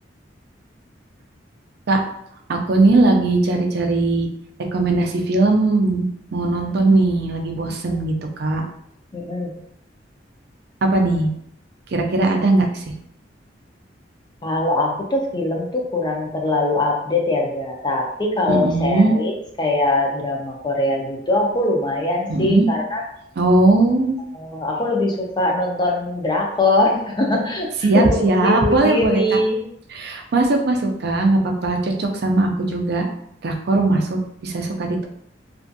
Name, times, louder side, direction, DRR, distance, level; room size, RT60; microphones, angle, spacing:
voice 1, 2.5-4.3 4.7-8.6 10.8-11.3 11.9-12.8 18.5-19.1 22.3-22.7 23.4-24.2 27.8-29.4 29.9-33.1 33.4-35.1, right 2 dB, 60° right, 2 dB, 0.4 m, -19 dB
voice 2, 9.1-9.5 14.4-23.0 24.3-29.6 33.7-34.1, left 2 dB, 25° left, 0 dB, 0.5 m, -22 dB
2.5 x 2.3 x 2.6 m, 0.72 s
head